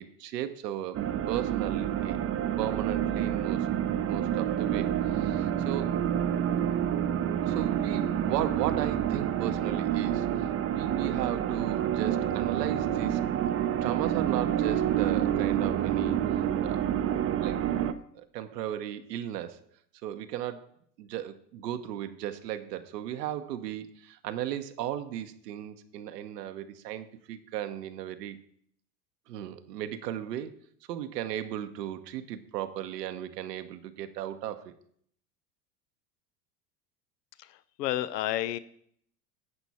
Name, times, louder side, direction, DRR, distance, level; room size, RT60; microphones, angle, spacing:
voice 1, 0.0-2.2 2.6-3.7 4.1-6.0 7.4-13.2 13.8-16.2 16.6-16.8 17.4-17.6 18.1-19.6 20.0-20.7 21.0-28.4 29.3-30.5 30.9-34.7, right 11 dB, 75° right, 9 dB, 1.1 m, -36 dB
sound 1, 0.9-17.9, right 10 dB, 30° right, 0.7 m, -28 dB
voice 2, 37.8-38.6, left 13 dB, 75° left, 16 dB, 0.8 m, -30 dB
11.5 x 8.1 x 4.3 m, 0.65 s
hypercardioid pair, 85°, 49 cm